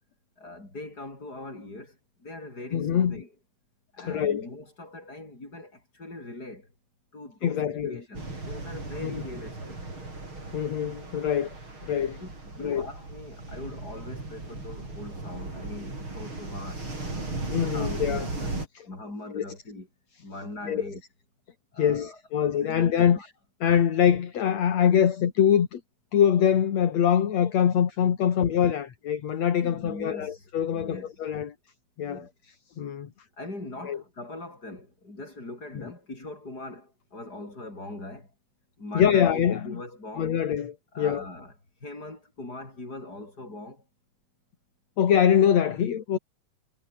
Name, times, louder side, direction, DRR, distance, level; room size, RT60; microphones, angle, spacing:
voice 1, 0.4-3.3 3.9-6.7 7.1-9.8 11.3-11.5 12.2-19.9 20.2-21.0 21.7-22.2 22.6-23.3 29.6-31.1 32.0-32.3 33.4-38.3 38.8-40.4 40.9-41.5 41.8-43.9, left 2 dB, 30° left, 8.7 m, -41 dB
voice 2, 2.7-3.2 4.0-4.5 7.4-8.0 10.5-11.5 11.8-12.2 12.6-12.9 17.5-18.3 19.3-19.4 20.7-20.8 21.8-23.2 23.6-25.8 26.1-31.5 32.0-32.2 32.8-33.1 33.8-34.0 35.8-35.9 38.9-39.8 40.2-41.2 45.0-46.2, left 9 dB, 60° left, 3.2 m, -24 dB
sound 1, 8.1-18.7, right 2 dB, 40° right, 8.1 m, -37 dB
omnidirectional pair, 3.5 m